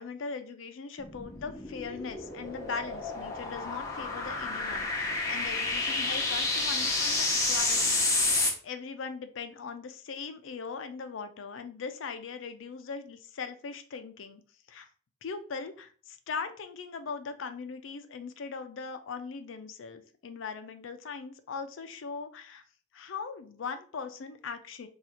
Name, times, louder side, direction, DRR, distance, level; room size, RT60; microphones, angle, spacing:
voice 1, 0.0-8.0 8.3-14.4 14.7-14.9 15.2-22.6 22.9-24.9, left 5 dB, 90° left, 9 dB, 0.4 m, -40 dB
sound 1, 1.0-8.5, left 2 dB, 15° left, 0.7 m, -30 dB
2.7 x 2.4 x 4.2 m, 0.42 s
head